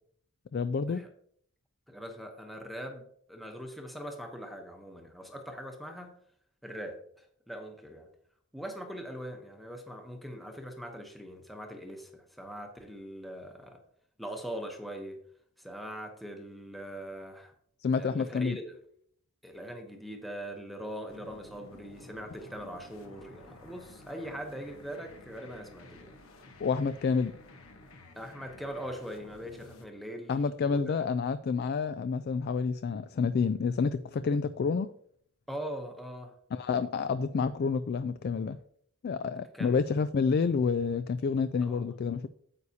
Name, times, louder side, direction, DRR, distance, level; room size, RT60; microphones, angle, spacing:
voice 1, 0.5-1.0 17.8-18.6 26.6-27.3 30.3-34.9 36.5-38.6 39.0-42.3, left 5 dB, 45° left, 13 dB, 0.3 m, -29 dB
voice 2, 1.9-6.1 6.6-8.1 8.5-13.8 14.2-15.2 15.6-17.5 18.0-18.8 19.4-26.1 28.2-30.3 30.6-30.9 35.5-36.3 39.5-39.8 41.6-41.9, equal, ahead, 3 dB, 0.9 m, -41 dB
sound 1, 21.1-29.9, left 2 dB, 70° left, 1.2 m, -52 dB
9.5 x 8.1 x 2.8 m, 0.65 s
head